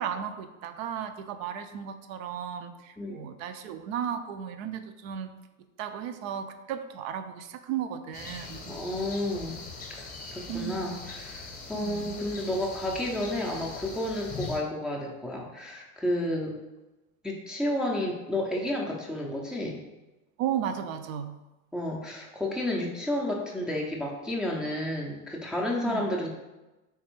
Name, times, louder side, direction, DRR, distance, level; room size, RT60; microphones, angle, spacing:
voice 1, 0.0-5.3 5.8-8.8 10.5-11.0 11.8-12.2 20.4-21.4 25.8-26.0, right 8 dB, 65° right, 9 dB, 0.5 m, -35 dB
sound 1, 8.1-14.6, left 4 dB, 20° left, 0.8 m, -41 dB
voice 2, 8.7-9.6 9.9-16.6 17.2-19.8 21.7-26.3, left 1 dB, ahead, -2 dB, 0.4 m, -31 dB
3.5 x 3.1 x 3.0 m, 1.0 s
hypercardioid pair, 95°, 43 cm